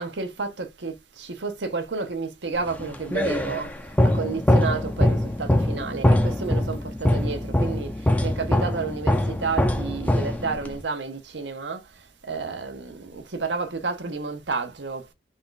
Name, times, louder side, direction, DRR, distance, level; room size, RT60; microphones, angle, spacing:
voice 1, 0.0-15.1, right 4 dB, 85° right, 0.9 m, -31 dB
sound 1, 2.7-10.8, left 1 dB, 10° left, 0.5 m, -23 dB
3.7 x 2.4 x 3.9 m
head